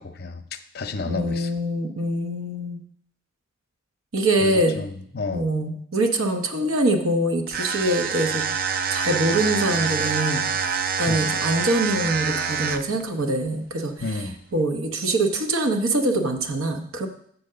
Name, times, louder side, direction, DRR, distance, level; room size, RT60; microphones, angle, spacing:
voice 1, 0.0-1.5 4.4-5.4 11.1-11.3 14.0-14.3, left 3 dB, 50° left, 10 dB, 0.6 m, -31 dB
voice 2, 1.1-2.8 4.1-4.8 5.3-8.5 8.9-14.2 14.5-17.1, right 1 dB, 90° right, 4 dB, 0.9 m, -24 dB
sound 1, 7.5-13.0, right 6 dB, 45° right, 0.4 m, -26 dB
7.6 x 4.2 x 6.7 m, 0.65 s
head